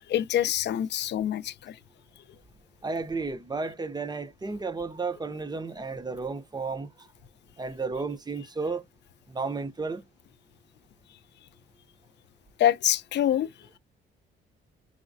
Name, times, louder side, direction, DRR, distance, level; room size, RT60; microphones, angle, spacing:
voice 1, 0.1-1.8 12.6-13.5, left 11 dB, 60° left, 0.5 m, -25 dB
voice 2, 2.8-6.9 7.6-8.8 9.3-10.0, right 4 dB, 20° right, 0.7 m, -32 dB
4.8 x 3.0 x 2.5 m
cardioid pair, 90°, 20 cm